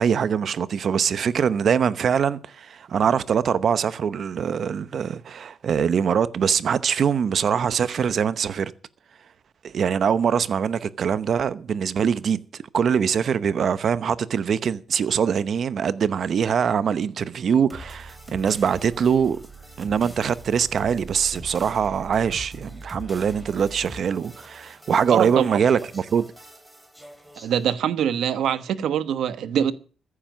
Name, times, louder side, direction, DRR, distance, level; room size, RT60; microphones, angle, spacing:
voice 1, 0.0-8.7 9.6-19.4 19.8-26.2, right 7 dB, 55° right, 0.9 m, -23 dB
sound 1, 17.7-27.7, right 1 dB, 5° right, 3.6 m, -42 dB
voice 2, 25.1-25.6 27.4-29.7, right 9 dB, 85° right, 1.1 m, -23 dB
15.0 x 9.9 x 6.3 m
cardioid pair, 120°, 0 cm